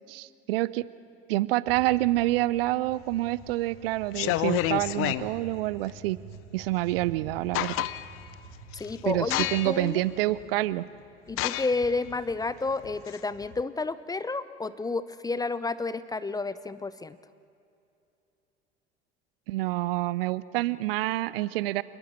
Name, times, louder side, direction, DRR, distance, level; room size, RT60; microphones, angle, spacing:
voice 1, 0.1-0.8 1.3-6.2 6.5-7.9 9.1-10.9 19.5-21.8, right 17 dB, 55° right, 19 dB, 0.7 m, -27 dB
sound 1, 1.7-9.6, right 4 dB, 35° right, 5.7 m, -47 dB
sound 2, 3.1-3.5 4.0-5.3 6.9-7.0 7.3-8.2 8.7-8.9 9.3-9.9 10.4-10.5 11.3-13.6, left 15 dB, 40° left, 0.8 m, -30 dB
voice 2, 8.7-10.0 11.3-17.2, left 3 dB, 10° left, 15 dB, 0.6 m, -31 dB
27.0 x 20.5 x 7.3 m, 2.7 s
figure-of-eight pair, 70°, 34 cm